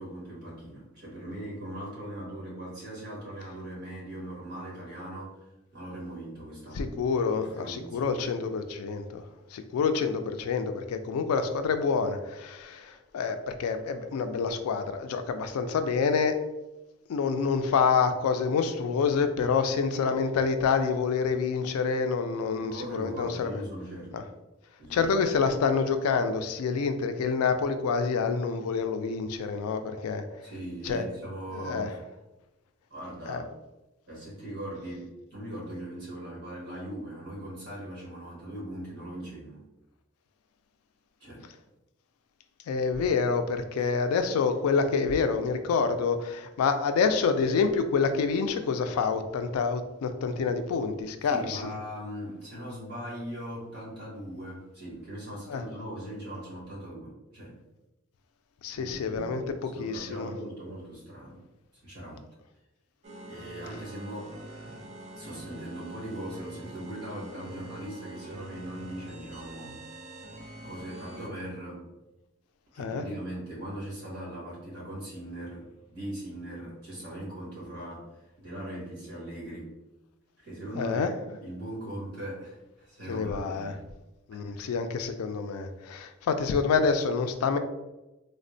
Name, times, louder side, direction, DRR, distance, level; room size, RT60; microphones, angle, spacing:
voice 1, 0.0-7.0 7.4-8.2 22.6-24.1 24.8-25.2 29.4-29.5 30.4-32.2 32.9-33.4 34.1-35.0 35.3-39.6 41.2-41.4 43.8-43.9 51.2-57.5 58.7-61.4 61.8-62.2 63.2-64.3 65.2-70.1 70.6-71.9 72.7-79.7 80.4-83.8 84.3-84.6, right 1 dB, 50° right, -6 dB, 1.5 m, -40 dB
voice 2, 6.8-9.2 9.5-16.3 17.1-23.5 24.1-24.2 24.9-30.2 30.8-31.1 31.5-31.9 33.3-33.4 42.7-51.6 55.5-55.6 58.6-60.3 72.8-73.0 80.8-81.1 83.1-83.7 84.3-87.6, left 5 dB, 90° left, 9 dB, 0.3 m, -27 dB
sound 1, 63.0-71.3, right 1 dB, 35° right, 0.4 m, -45 dB
3.5 x 2.1 x 2.5 m, 1.0 s
head